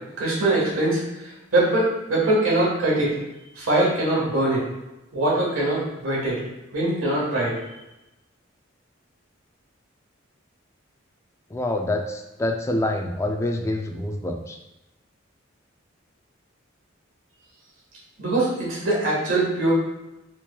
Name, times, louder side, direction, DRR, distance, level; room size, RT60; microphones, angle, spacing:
voice 1, 0.2-3.1 3.6-4.6 5.1-6.4 6.7-7.5 18.2-19.7, right 2 dB, 80° right, -5 dB, 1.3 m, -22 dB
voice 2, 11.5-14.6, left 1 dB, 15° left, 3 dB, 0.3 m, -26 dB
4.4 x 2.9 x 2.2 m, 0.96 s
head